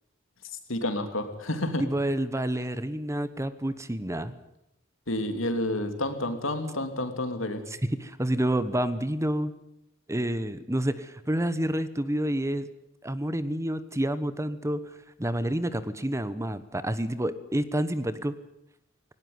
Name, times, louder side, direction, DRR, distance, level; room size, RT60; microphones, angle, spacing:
voice 1, 0.7-1.8 5.1-7.6, left 1 dB, 80° left, 7 dB, 3.0 m, -29 dB
voice 2, 1.8-4.3 7.7-9.5 10.1-12.6 13.0-14.8 15.2-18.3, right 1 dB, 15° right, 14 dB, 1.0 m, -29 dB
18.5 x 18.0 x 9.6 m, 0.83 s
head